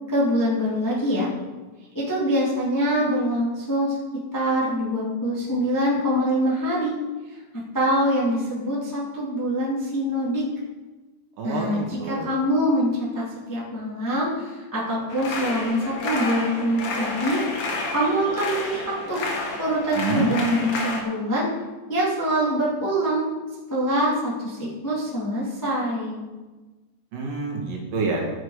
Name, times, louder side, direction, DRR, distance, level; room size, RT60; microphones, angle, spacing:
voice 1, 0.1-1.3 1.9-4.0 4.3-6.9 7.3-7.4 7.7-10.4 11.4-17.4 17.9-19.2 19.6-21.5 21.9-23.3 23.7-26.2, equal, 10° left, -6 dB, 1.3 m, -24 dB
voice 2, 11.4-12.3 20.0-20.3 27.1-28.2, right 4 dB, 65° right, -1 dB, 3.4 m, -27 dB
sound 1, 15.1-21.0, left 3 dB, 60° left, 2.8 m, -30 dB
13.0 x 6.7 x 4.9 m, 1.2 s
omnidirectional pair, 4.3 m